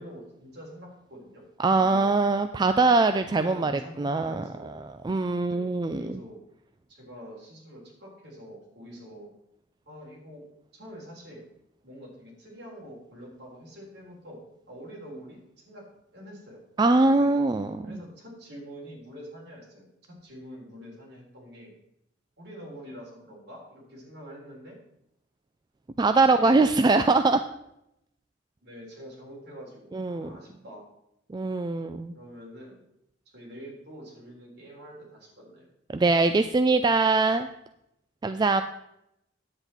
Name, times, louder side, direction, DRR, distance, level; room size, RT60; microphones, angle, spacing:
voice 1, 0.0-1.4 1.7-2.1 3.2-4.8 5.4-6.4 6.9-9.3 9.9-10.4 10.7-11.4 11.8-14.4 14.7-15.8 16.1-16.6 17.0-17.4 17.8-21.7 22.4-24.8 26.2-26.5 28.6-30.9 32.1-32.8 33.3-35.7, equal, 60° right, -3 dB, 3.6 m, -45 dB
voice 2, 1.6-3.7 4.0-6.0 16.8-17.9 26.0-27.4 29.9-30.3 31.3-32.2 35.9-37.5 38.2-38.6, right 3 dB, 25° right, 9 dB, 0.3 m, -22 dB
9.7 x 8.0 x 4.3 m, 0.82 s
head